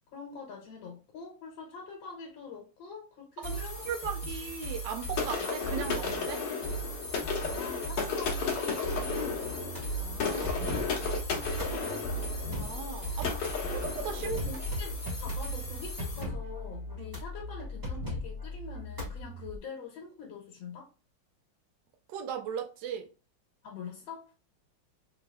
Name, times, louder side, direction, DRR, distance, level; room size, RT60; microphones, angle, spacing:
voice 1, 0.1-4.1 7.4-9.7 11.6-12.3 14.2-20.9 23.6-24.3, left 5 dB, 85° left, 1.8 m, -45 dB
sound 1, 3.4-16.2, right 2 dB, 25° left, 1.1 m, -38 dB
voice 2, 3.4-6.4 10.0-10.7 11.6-11.8 12.5-13.4 13.7-14.4 17.0-17.1 22.1-23.1, right 7 dB, 75° right, 1.3 m, -38 dB
sound 2, 5.2-14.8, left 5 dB, 70° left, 1.6 m, -34 dB
sound 3, 9.4-19.6, left 1 dB, 15° right, 1.1 m, -39 dB
4.6 x 2.8 x 2.3 m
omnidirectional pair, 2.1 m